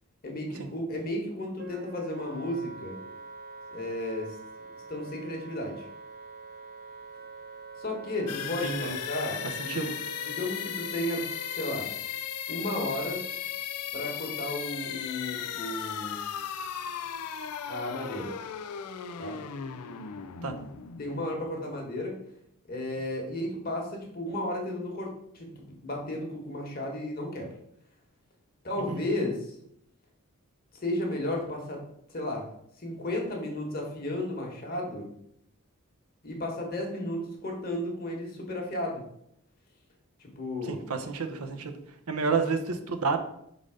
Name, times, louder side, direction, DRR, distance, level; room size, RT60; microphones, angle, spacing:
voice 1, 0.2-3.0 3.7-4.4 4.9-5.8 7.8-9.9 10.2-11.3 11.6-12.1 12.5-13.2 13.9-16.2 17.7-18.3 19.2-19.4 21.0-22.1 22.7-25.1 25.3-27.5 28.6-29.6 30.8-31.8 32.1-32.4 32.8-35.1 36.2-39.0 40.2-40.8, left 1 dB, 40° left, 0 dB, 1.4 m, -33 dB
Wind instrument woodwind instrument, 1.6-11.9, right 3 dB, 40° right, 0.5 m, -45 dB
sound 1, 8.3-22.0, left 9 dB, 90° left, 0.4 m, -36 dB
voice 2, 8.6-9.0 9.7-9.8 20.4-20.5 28.9-29.0 40.7-41.8 42.1-43.2, right 4 dB, 80° right, 6 dB, 0.7 m, -30 dB
5.1 x 4.0 x 5.0 m, 0.73 s
head